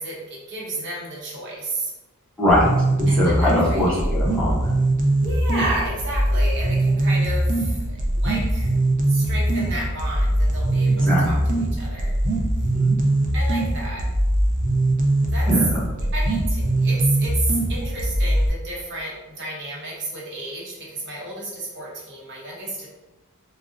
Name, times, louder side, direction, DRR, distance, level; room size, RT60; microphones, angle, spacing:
voice 1, 0.0-1.9 3.1-4.1 5.2-8.7 9.1-10.9 11.2-12.1 13.3-14.0 15.3-15.5 16.1-22.9, right 2 dB, 55° right, -4 dB, 0.8 m, -32 dB
voice 2, 2.4-2.7 3.1-4.7 10.9-11.3 12.7-12.9 15.5-15.8, left 1 dB, 5° left, -8 dB, 0.8 m, -21 dB
sound 1, 2.5-18.5, right 1 dB, 35° right, 0.4 m, -21 dB
3.6 x 2.0 x 2.5 m, 1.1 s
head